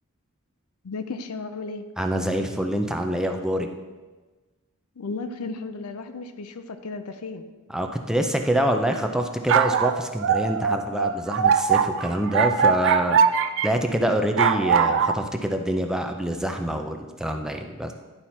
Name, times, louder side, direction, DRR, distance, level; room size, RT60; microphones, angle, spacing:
voice 1, 0.8-1.9 5.0-7.4, left 3 dB, 85° left, 9 dB, 0.6 m, -34 dB
voice 2, 2.0-3.7 7.7-13.2 13.6-17.9, right 1 dB, 5° right, 4 dB, 0.5 m, -26 dB
sound 1, 9.2-13.7 14.4-15.1, right 6 dB, 60° right, 0.4 m, -21 dB
11.0 x 4.4 x 4.2 m, 1.3 s
head